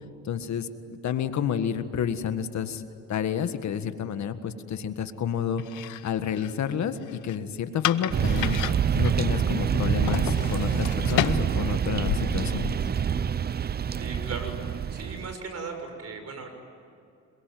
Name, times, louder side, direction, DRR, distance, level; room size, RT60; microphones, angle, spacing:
voice 1, 0.2-2.8 3.1-5.6 6.0-8.6 8.9-12.7, left 8 dB, 65° left, 9 dB, 1.7 m, -30 dB
sound 1, 5.6-13.0, left 13 dB, 90° left, 0.9 m, -34 dB
sound 2, 8.1-15.3, right 7 dB, 35° right, 0.6 m, -26 dB
voice 2, 14.0-14.5 14.9-16.5, right 4 dB, 55° right, 6 dB, 6.6 m, -37 dB
27.5 x 22.5 x 9.4 m, 2.6 s
cardioid pair, 90°, 30 cm